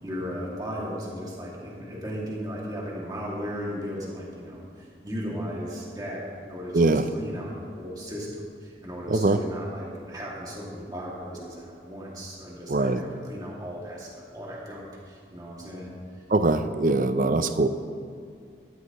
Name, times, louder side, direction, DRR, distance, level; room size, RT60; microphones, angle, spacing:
voice 1, 0.0-15.9, equal, 20° right, -4 dB, 2.3 m, -36 dB
voice 2, 6.7-7.1 9.1-9.4 12.7-13.0 16.3-17.7, right 2 dB, 50° right, 10 dB, 0.5 m, -22 dB
14.0 x 12.5 x 3.1 m, 2.3 s
head